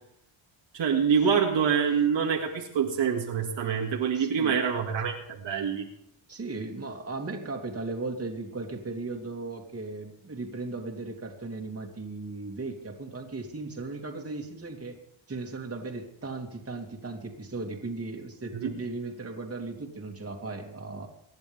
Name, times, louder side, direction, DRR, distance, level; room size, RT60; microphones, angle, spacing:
voice 1, 0.7-5.8 18.5-18.7, right 7 dB, 65° right, 1 dB, 2.6 m, -26 dB
voice 2, 4.1-4.6 6.3-15.0 15.3-21.1, right 3 dB, 30° right, 2 dB, 3.0 m, -37 dB
25.5 x 10.5 x 3.6 m, 0.75 s
cardioid pair, 110°, 47 cm